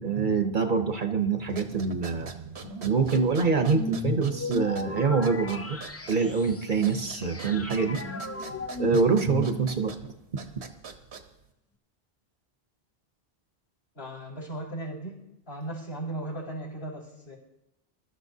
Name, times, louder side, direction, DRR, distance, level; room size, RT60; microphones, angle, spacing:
voice 1, 0.0-2.3 2.8-5.8 6.1-8.0 8.8-9.9, right 5 dB, 50° right, 6 dB, 0.9 m, -25 dB
sound 1, 1.4-11.5, right 4 dB, 80° right, 1.3 m, -44 dB
sound 2, 3.7-10.0, left 3 dB, 25° left, 0.3 m, -36 dB
voice 2, 13.9-17.4, right 1 dB, 65° left, -6 dB, 4.7 m, -37 dB
22.5 x 12.5 x 2.7 m, 0.89 s
omnidirectional pair, 1.1 m